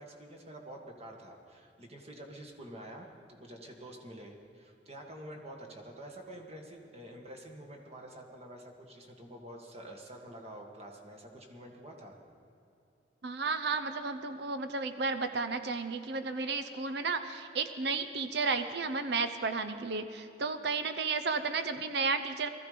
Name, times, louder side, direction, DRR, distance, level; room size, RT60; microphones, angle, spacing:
voice 1, 0.0-12.2, right 1 dB, 35° right, 2 dB, 1.9 m, -48 dB
voice 2, 13.2-22.5, right 4 dB, 65° right, 10 dB, 0.8 m, -33 dB
19.5 x 14.0 x 5.2 m, 2.7 s
head